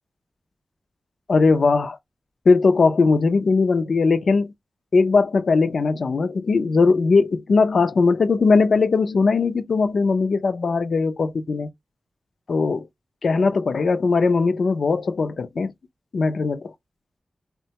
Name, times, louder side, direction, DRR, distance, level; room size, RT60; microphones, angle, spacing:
voice 1, 1.3-2.0 2.5-4.5 4.9-11.7 12.5-12.9 13.2-15.7 16.1-16.7, left 4 dB, 75° left, 0.5 m, -19 dB
3.7 x 2.1 x 2.8 m
wide cardioid pair, 75°, 0 cm